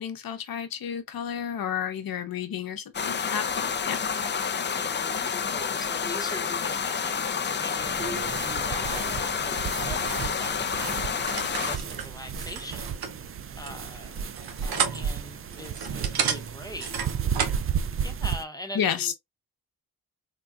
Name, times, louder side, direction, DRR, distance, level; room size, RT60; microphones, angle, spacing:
voice 1, 0.0-4.0 18.7-19.1, left 8 dB, 70° left, 0.7 m, -31 dB
sound 1, 2.9-11.8, left 6 dB, 30° left, 0.4 m, -29 dB
voice 2, 4.8-8.0 8.4-12.9 13.6-14.3 14.6-16.9 18.0-19.1, left 1 dB, 10° left, 0.8 m, -41 dB
sound 2, 7.8-18.4, right 7 dB, 40° right, 0.4 m, -33 dB
sound 3, 9.8-17.7, right 7 dB, 80° right, 0.7 m, -33 dB
3.7 x 2.2 x 2.3 m
cardioid pair, 60°, 37 cm